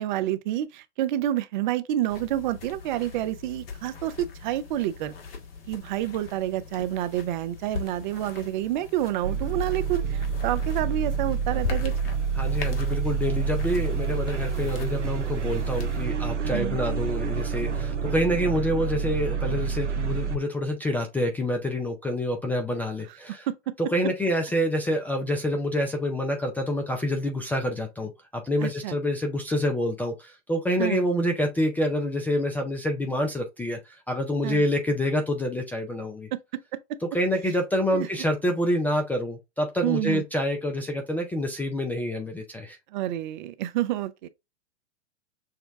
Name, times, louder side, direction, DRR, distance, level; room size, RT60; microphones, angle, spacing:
voice 1, 0.0-5.1 5.7-11.9 16.5-16.8 23.5-23.7 28.6-29.0 30.8-31.0 34.4-34.6 36.3-36.6 37.9-38.1 39.8-40.2 42.9-44.3, right 13 dB, 45° right, 0.6 m, -28 dB
sound 1, 2.1-16.1, left 5 dB, 55° left, 1.3 m, -40 dB
sound 2, 9.2-20.4, right 6 dB, 90° right, 0.6 m, -28 dB
voice 2, 12.4-23.5 23.9-36.3 37.1-42.8, left 1 dB, 5° left, 0.4 m, -27 dB
6.4 x 2.2 x 3.4 m
figure-of-eight pair, 105°, 35 cm